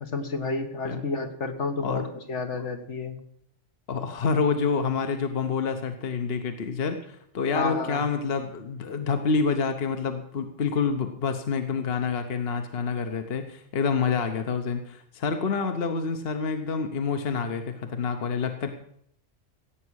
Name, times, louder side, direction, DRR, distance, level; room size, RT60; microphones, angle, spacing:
voice 1, 0.0-3.2 7.5-8.1, left 3 dB, 75° left, 5 dB, 1.8 m, -30 dB
voice 2, 3.9-18.7, left 5 dB, 55° left, 7 dB, 1.2 m, -27 dB
16.0 x 8.5 x 6.4 m, 0.70 s
omnidirectional pair, 1.2 m